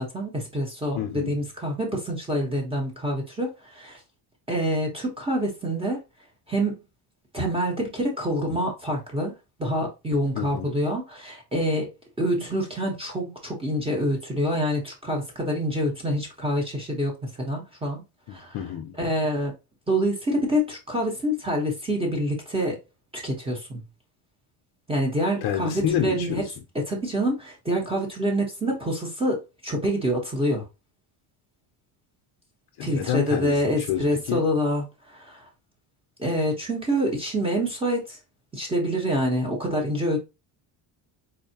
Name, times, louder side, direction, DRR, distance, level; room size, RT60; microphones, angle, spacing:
voice 1, 0.0-4.0 4.5-6.0 6.5-6.8 7.3-9.3 9.6-11.9 12.2-18.0 18.3-18.6 19.0-19.5 19.9-22.8 23.1-23.8 24.9-26.4 26.7-30.6 32.8-35.4 36.2-38.2 38.5-40.2, equal, 10° right, 1.0 m, -26 dB
voice 2, 0.9-1.4 10.3-10.7 18.3-19.0 25.4-26.5 32.8-34.4, left 10 dB, 50° left, 0.7 m, -29 dB
4.0 x 2.8 x 2.8 m
cardioid pair, 160°, 49 cm